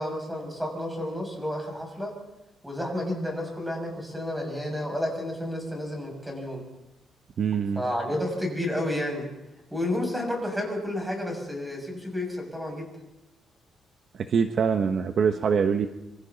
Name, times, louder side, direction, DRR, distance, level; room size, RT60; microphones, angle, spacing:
voice 1, 0.0-2.1 2.6-6.6 7.7-9.2 9.7-12.9, left 1 dB, 5° right, 1 dB, 6.7 m, -31 dB
voice 2, 7.4-7.8 14.3-15.9, right 6 dB, 50° right, 6 dB, 1.1 m, -24 dB
26.5 x 25.5 x 4.1 m, 0.94 s
cardioid pair, 145°, 0 cm